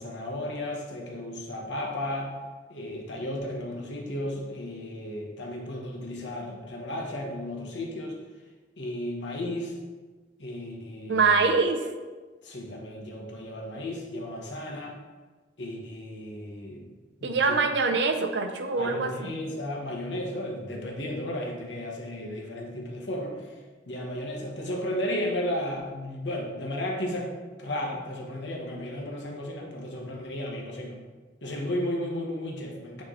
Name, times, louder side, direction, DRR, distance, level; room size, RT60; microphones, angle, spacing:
voice 1, 0.0-2.3 2.7-8.2 8.8-9.8 10.4-11.5 12.4-15.0 15.6-16.9 17.2-17.6 18.7-23.5 23.9-27.3 27.6-31.0 31.4-33.0, left 1 dB, 75° left, -1 dB, 1.1 m, -34 dB
voice 2, 11.1-11.9 17.2-19.3, right 4 dB, 70° right, 7 dB, 0.6 m, -24 dB
8.7 x 3.2 x 3.8 m, 1.3 s
head